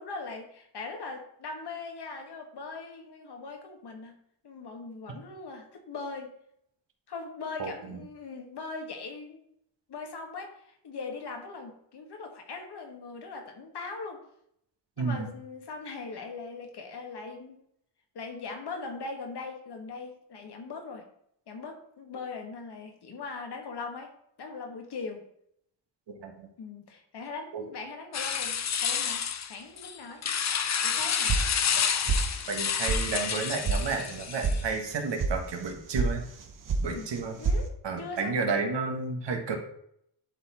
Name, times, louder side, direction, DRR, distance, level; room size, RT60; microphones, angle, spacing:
voice 1, 0.0-4.2 4.4-6.3 7.1-9.4 9.9-14.2 15.0-17.6 18.2-21.0 21.5-24.1 24.4-25.3 26.6-30.2 30.8-31.4 36.8-37.1 37.4-37.7 38.0-38.4, left 4 dB, 65° left, 3 dB, 1.7 m, -40 dB
voice 2, 15.0-15.3 26.2-26.5 27.5-27.6 32.5-36.2 36.8-37.4 37.8-39.6, right 4 dB, 80° right, 3 dB, 1.6 m, -31 dB
sound 1, 28.1-34.7, left 7 dB, 40° left, 0.6 m, -29 dB
sound 2, 31.3-31.8 32.1-32.6 32.8-33.0 33.3-33.8 34.1-34.5 34.8-35.3 35.6-36.1 36.4-36.9 37.1-37.6, right 4 dB, 50° right, 1.0 m, -27 dB
11.0 x 4.1 x 4.3 m, 0.72 s
wide cardioid pair, 160°, 42 cm